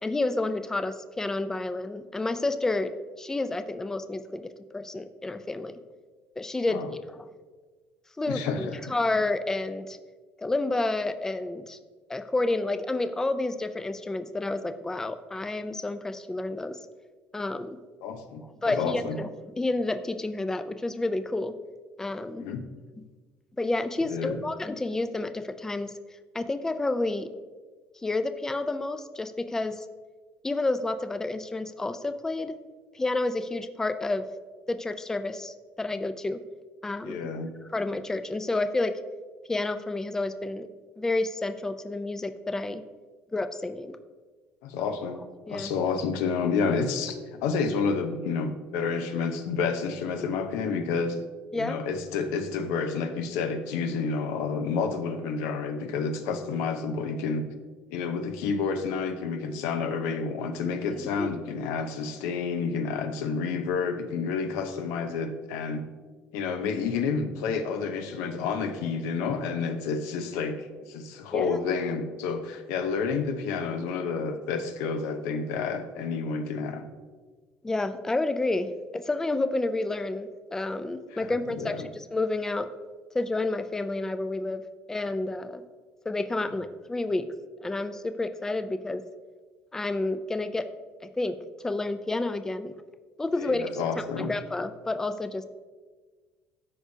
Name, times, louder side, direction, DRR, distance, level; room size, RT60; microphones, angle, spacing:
voice 1, 0.0-2.9 3.2-5.7 6.4-7.2 8.2-10.0 10.4-11.8 12.1-16.8 17.3-17.8 18.6-19.3 19.6-21.5 22.0-22.4 23.6-25.9 26.3-27.3 28.0-29.9 30.4-32.5 32.9-34.2 34.7-36.4 36.8-37.2 37.7-38.9 39.5-40.7 41.0-42.8 43.3-44.0 45.5-45.7 51.5-51.8 61.0-61.3 71.3-71.6 77.6-82.7 83.1-84.6 84.9-85.6 86.1-87.3 87.6-89.0 89.7-90.7 91.2-91.4 91.6-92.7 93.2-93.7 94.2-95.4, left 2 dB, 10° left, 10 dB, 0.4 m, -30 dB
voice 2, 8.3-8.8 18.0-19.2 22.4-22.6 24.0-24.4 37.0-37.5 44.6-45.2 45.5-51.2 51.5-57.5 57.9-65.8 66.3-76.8 81.1-81.3 81.6-81.9 93.4-94.3, left 5 dB, 90° left, 7 dB, 0.7 m, -30 dB
13.0 x 4.9 x 2.8 m, 1.4 s
cardioid pair, 105°, 4 cm